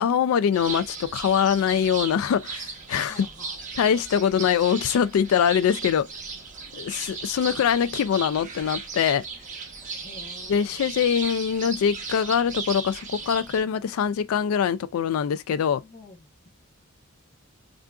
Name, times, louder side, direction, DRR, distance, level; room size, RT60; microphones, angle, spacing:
voice 1, 0.0-3.2 3.8-6.1 6.8-9.2 10.5-15.8, left 8 dB, 80° left, 0.3 m, -23 dB
sound 1, 0.5-13.6, right 4 dB, 40° right, 0.8 m, -36 dB
voice 2, 3.1-3.6 6.6-7.0 10.0-10.9 15.7-16.5, left 3 dB, 30° left, 0.8 m, -49 dB
3.6 x 2.5 x 2.3 m
head